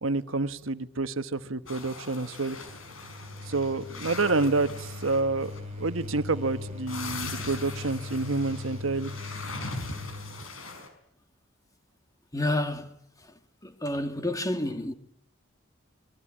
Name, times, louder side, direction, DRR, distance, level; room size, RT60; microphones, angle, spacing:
voice 1, 0.0-2.6 3.4-5.5 5.8-9.1, right 3 dB, 80° right, 1.3 m, -28 dB
sound 1, 1.7-10.9, left 3 dB, 85° left, 5.4 m, -41 dB
sound 2, 2.7-10.4, left 2 dB, 35° right, 3.4 m, -40 dB
voice 2, 12.3-12.9 13.2-13.3 13.6-14.9, left 1 dB, 20° left, 2.0 m, -29 dB
25.5 x 22.0 x 8.8 m
head